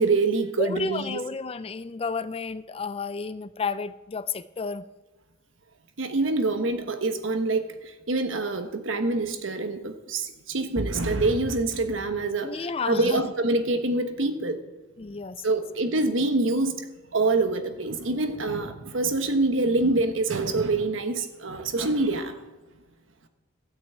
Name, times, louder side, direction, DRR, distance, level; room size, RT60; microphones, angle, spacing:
voice 1, 0.0-1.2 6.0-14.6 15.4-16.9 17.1-22.4, right 3 dB, 80° right, 8 dB, 1.2 m, -25 dB
voice 2, 0.6-4.9 12.4-13.3 15.0-15.4, left 4 dB, 30° left, 15 dB, 0.4 m, -31 dB
13.0 x 6.2 x 8.4 m, 1.1 s
head